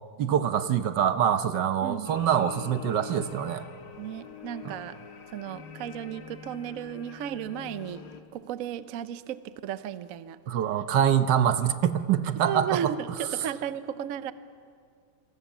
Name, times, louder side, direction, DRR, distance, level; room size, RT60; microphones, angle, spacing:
voice 1, 0.2-3.7 4.6-4.7 10.5-12.9, right 9 dB, 80° right, 11 dB, 1.5 m, -25 dB
voice 2, 1.8-2.2 4.0-5.0 5.3-8.0 8.3-10.4 12.4-14.3, right 9 dB, 60° right, 13 dB, 1.0 m, -34 dB
voz na basílica arranjada, 2.0-8.2, left 7 dB, 70° left, 1.9 m, -44 dB
27.0 x 22.5 x 7.2 m, 2.2 s
omnidirectional pair, 1.9 m